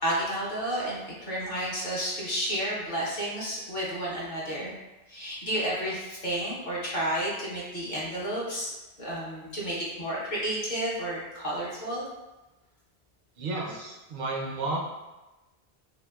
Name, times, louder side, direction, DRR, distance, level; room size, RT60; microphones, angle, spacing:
voice 1, 0.0-4.7 5.1-8.7 9.0-12.1, right 1 dB, 50° left, -7 dB, 0.9 m, -31 dB
voice 2, 13.4-14.8, right 2 dB, 60° right, -1 dB, 0.7 m, -32 dB
3.0 x 2.8 x 2.2 m, 1.1 s
omnidirectional pair, 1.1 m